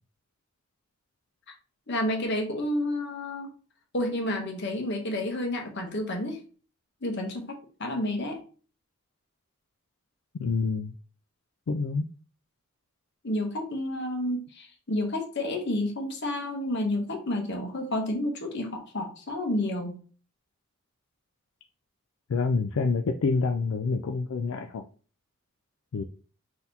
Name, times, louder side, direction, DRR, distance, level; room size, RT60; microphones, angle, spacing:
voice 1, 1.9-3.5 3.9-6.4 7.0-8.4 13.2-19.9, left 1 dB, 55° left, 3 dB, 1.1 m, -30 dB
voice 2, 10.4-10.9 11.7-12.1 22.3-24.9 25.9-26.0, left 4 dB, 75° left, 4 dB, 0.4 m, -27 dB
3.9 x 2.9 x 4.0 m, 0.40 s
head